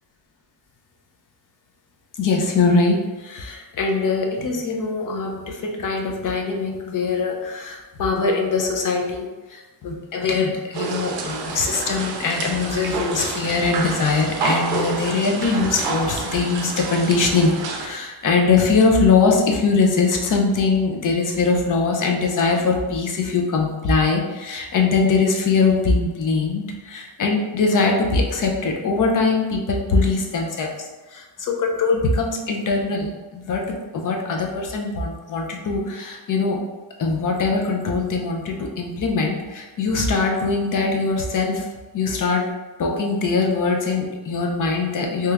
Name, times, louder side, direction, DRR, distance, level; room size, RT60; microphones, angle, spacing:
voice 1, 2.2-30.7 31.1-33.6 33.9-36.6 37.0-41.6 41.9-42.4 42.8-45.3, left 4 dB, 45° left, 1 dB, 0.5 m, -22 dB
sound 1, 10.7-17.9, right 3 dB, 60° right, 0.5 m, -28 dB
3.0 x 2.3 x 3.3 m, 1.2 s
wide cardioid pair, 165°, 45 cm